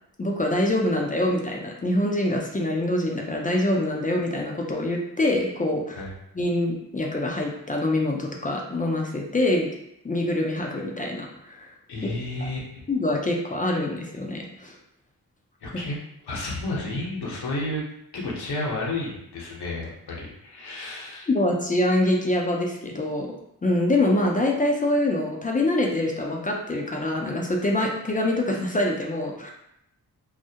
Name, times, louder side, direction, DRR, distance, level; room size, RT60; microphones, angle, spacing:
voice 1, 0.2-6.0 6.3-9.7 10.0-11.7 12.0-12.1 12.4-12.5 12.9-14.8 21.3-23.3 23.6-29.5, left 1 dB, 20° left, -1 dB, 0.4 m, -25 dB
voice 2, 11.9-12.7 15.6-16.0 16.2-17.8 18.1-21.3, left 2 dB, 70° left, -3 dB, 0.8 m, -31 dB
2.3 x 2.0 x 2.7 m, 0.79 s
cardioid pair, 50°, 40 cm